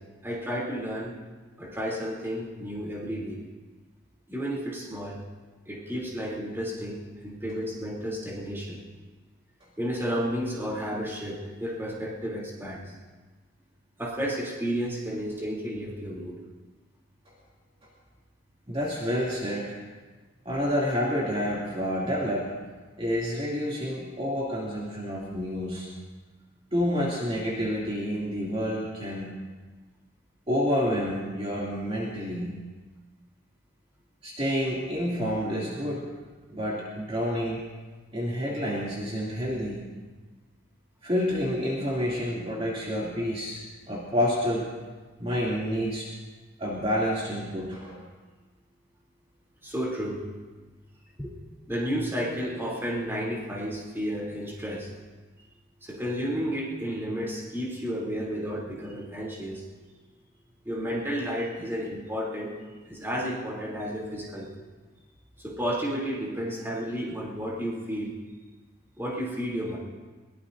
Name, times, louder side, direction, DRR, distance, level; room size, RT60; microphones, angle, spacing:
voice 1, 0.2-1.2 1.6-3.4 4.3-5.2 5.7-8.8 9.8-12.9 14.0-16.4 49.6-50.2 51.2-51.3 51.7-54.9 55.8-59.6 60.6-62.5 62.8-64.6 65.4-68.1 69.0-69.8, equal, 10° right, -4 dB, 3.2 m, -32 dB
voice 2, 18.7-19.8 20.4-22.5 23.0-25.9 26.7-29.3 30.5-32.6 34.2-36.0 36.5-37.6 38.1-39.8 41.0-43.6 43.9-44.7 45.2-46.1 46.6-48.0, equal, 30° right, -6 dB, 2.8 m, -29 dB
22.5 x 20.0 x 2.7 m, 1.3 s
head